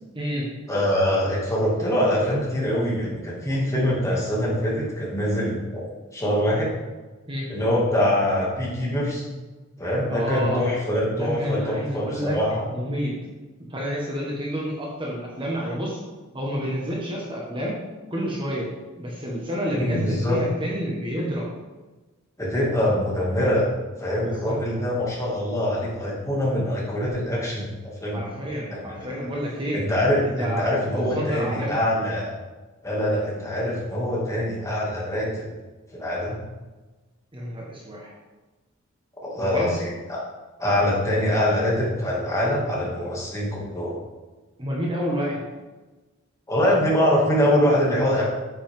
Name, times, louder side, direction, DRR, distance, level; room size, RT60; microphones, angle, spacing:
voice 1, 0.1-0.5 7.3-7.5 10.1-10.6 11.1-12.4 12.7-13.1 13.7-16.0 16.3-17.8 18.1-18.7 19.0-21.5 24.2-24.6 28.1-29.8 30.2-31.8 37.3-38.1 39.4-39.7 44.6-45.4 47.9-48.0, equal, 25° right, -3 dB, 1.6 m, -29 dB
voice 2, 0.7-6.7 7.5-9.2 9.8-12.6 19.7-20.4 22.4-23.7 24.0-28.2 28.7-29.1 29.7-32.4 32.8-35.5 35.9-36.4 39.2-40.2 40.6-44.0 46.5-48.2, equal, 15° left, -5 dB, 2.6 m, -24 dB
9.0 x 8.9 x 3.8 m, 1.2 s
head